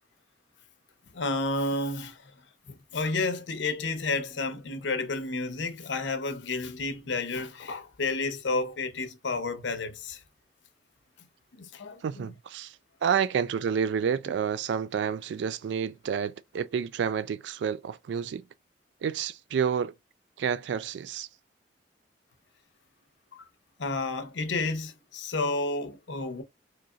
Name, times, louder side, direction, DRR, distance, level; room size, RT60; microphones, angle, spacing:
voice 1, 1.1-2.3 2.7-10.2 11.6-12.3 23.3-23.4 23.8-26.4, left 3 dB, 85° left, 0.7 m, -31 dB
voice 2, 12.0-12.8 13.0-18.5 19.0-19.9 20.4-21.3, right 7 dB, 70° right, 0.3 m, -29 dB
3.9 x 2.9 x 2.4 m
head